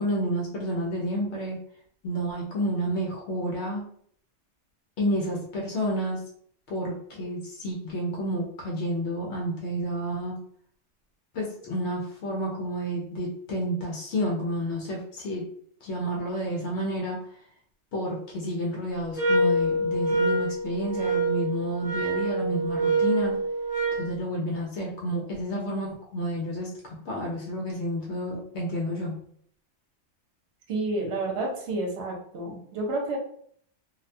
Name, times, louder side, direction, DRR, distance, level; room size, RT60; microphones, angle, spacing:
voice 1, 0.0-1.6 2.0-3.8 5.0-6.2 6.7-10.4 11.3-15.4 15.8-17.2 17.9-23.4 24.0-29.2, equal, 75° left, -2 dB, 0.9 m, -30 dB
sound 1, 19.1-24.1, right 1 dB, 30° left, 1.0 m, -26 dB
voice 2, 30.7-33.2, right 2 dB, 70° right, 0 dB, 1.0 m, -30 dB
2.4 x 2.1 x 2.6 m, 0.63 s
omnidirectional pair, 1.2 m